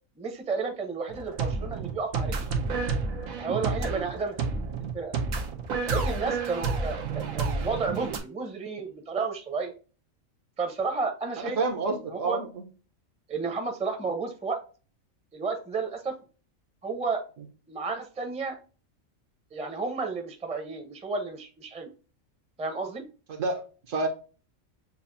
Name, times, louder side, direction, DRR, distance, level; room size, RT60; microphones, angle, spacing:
voice 1, 0.2-2.4 3.4-4.6 4.9-5.1 5.9-9.7 10.6-11.6 11.9-12.4 13.3-14.6 15.3-16.1 16.8-17.2 17.7-18.6 19.5-21.9 22.6-23.0, right 4 dB, 5° right, 4 dB, 0.5 m, -32 dB
sound 1, 1.1-8.2, right 4 dB, 90° right, 1.3 m, -30 dB
voice 2, 11.4-12.6 23.3-24.1, right 3 dB, 70° right, 4 dB, 1.3 m, -29 dB
6.9 x 2.5 x 2.6 m, 0.36 s
omnidirectional pair, 1.4 m